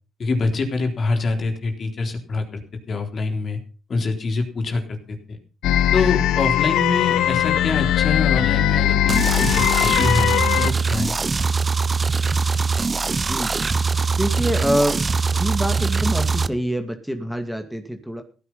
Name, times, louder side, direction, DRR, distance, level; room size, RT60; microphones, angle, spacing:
voice 1, 0.2-2.6 2.9-3.6 3.9-5.4 5.9-11.2, left 3 dB, 45° left, 4 dB, 3.8 m, -25 dB
sound 1, 5.6-10.7, left 11 dB, 85° left, 1.0 m, -19 dB
sound 2, 9.1-16.5, right 4 dB, 30° right, 0.8 m, -22 dB
voice 2, 14.1-15.0 15.3-18.2, equal, 5° right, 6 dB, 2.3 m, -25 dB
16.0 x 10.0 x 5.7 m, 0.36 s
cardioid pair, 90°, 0 cm